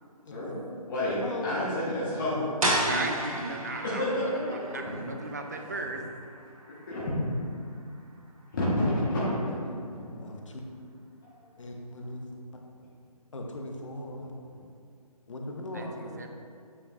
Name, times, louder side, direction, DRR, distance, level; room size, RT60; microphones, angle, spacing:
voice 1, 0.3-2.5 3.8-5.0 5.5-5.6 6.7-7.2 8.5-9.6 11.3-11.4, left 1 dB, 35° left, -9 dB, 1.2 m, -30 dB
voice 2, 1.2-2.2 2.8-4.0 9.4-9.8 10.2-10.6 11.6-12.2 13.3-14.3 15.3-16.3, left 1 dB, 50° left, 1 dB, 0.9 m, -40 dB
sound 1, 2.6-8.2, right 1 dB, 60° right, 1.3 m, -34 dB
voice 3, 2.9-4.1 4.5-6.0 15.7-16.3, right 3 dB, 25° right, 4 dB, 0.3 m, -35 dB
8.5 x 5.0 x 2.5 m, 2.3 s
figure-of-eight pair, 155°, 20 cm